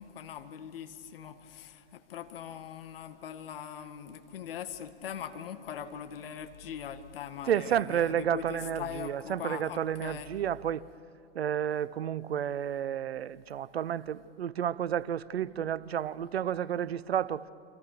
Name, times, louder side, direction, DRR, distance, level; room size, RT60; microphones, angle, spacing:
voice 1, 0.0-10.3, left 8 dB, 60° left, 1.9 m, -41 dB
voice 2, 7.5-10.8 11.3-17.5, right 9 dB, 70° right, 0.8 m, -31 dB
29.5 x 25.0 x 6.9 m
figure-of-eight pair, 105°, 32 cm